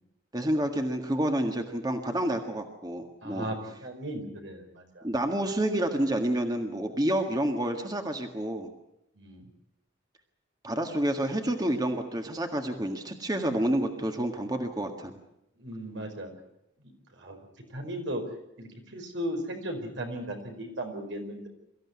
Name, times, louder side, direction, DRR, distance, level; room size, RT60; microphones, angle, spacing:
voice 1, 0.3-3.5 5.0-8.7 10.6-15.2, right 1 dB, 20° right, 4 dB, 1.7 m, -29 dB
voice 2, 3.2-5.1 9.2-9.5 15.6-16.3 16.8-16.9 17.2-17.4 17.7-18.2 18.6-21.5, right 1 dB, 80° right, 4 dB, 5.1 m, -36 dB
24.0 x 15.0 x 9.7 m, 0.87 s
head